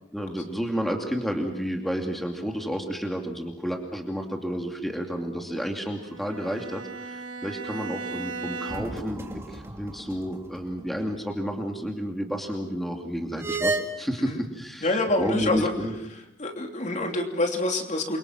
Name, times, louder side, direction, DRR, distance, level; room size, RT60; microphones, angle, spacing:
voice 1, 0.1-14.9 15.2-16.0, equal, ahead, 2 dB, 2.6 m, -31 dB
Bowed string instrument, 6.0-9.1, right 3 dB, 75° right, 4.2 m, -36 dB
sound 1, 8.7-10.4 10.7-10.8 13.4-13.8, right 2 dB, 15° right, 2.6 m, -31 dB
voice 2, 14.8-15.7 16.4-18.2, left 2 dB, 40° left, 3 dB, 3.1 m, -26 dB
29.0 x 24.5 x 6.1 m, 0.88 s
head